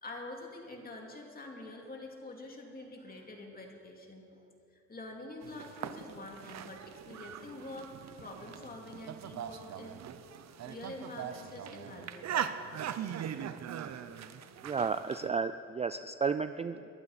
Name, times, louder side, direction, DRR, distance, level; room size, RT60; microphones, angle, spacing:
voice 1, 0.0-4.2 4.9-7.9 8.2-10.0 10.7-12.5, left 2 dB, 30° left, 1 dB, 2.7 m, -46 dB
sound 1, 5.4-15.3, right 9 dB, 60° right, 0.8 m, -41 dB
voice 2, 14.6-16.9, right 5 dB, 20° right, 11 dB, 0.4 m, -33 dB
22.5 x 12.0 x 4.3 m, 2.6 s
cardioid pair, 90°, 30 cm